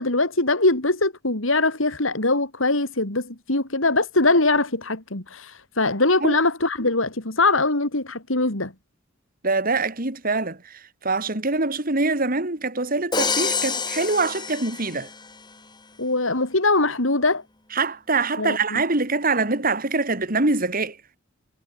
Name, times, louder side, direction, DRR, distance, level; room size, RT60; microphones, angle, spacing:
voice 1, 0.0-8.7 16.0-17.4 18.4-18.8, left 2 dB, 70° left, 4.0 m, -22 dB
voice 2, 9.4-15.1 17.7-21.0, right 3 dB, 45° right, 3.3 m, -24 dB
Crash cymbal, 13.1-15.3, left 5 dB, 20° left, 2.7 m, -27 dB
head